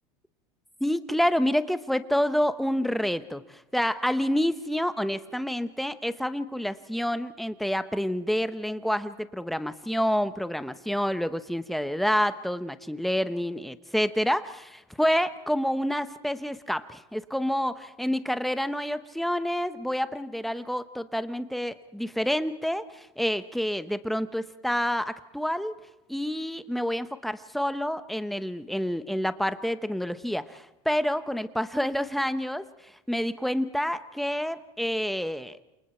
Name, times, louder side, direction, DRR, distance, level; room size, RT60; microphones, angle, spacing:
voice 1, 0.8-25.8 26.1-32.7 33.1-35.6, equal, ahead, 11 dB, 1.0 m, -28 dB
29.0 x 28.0 x 4.5 m, 0.98 s
supercardioid pair, 125°, 13 cm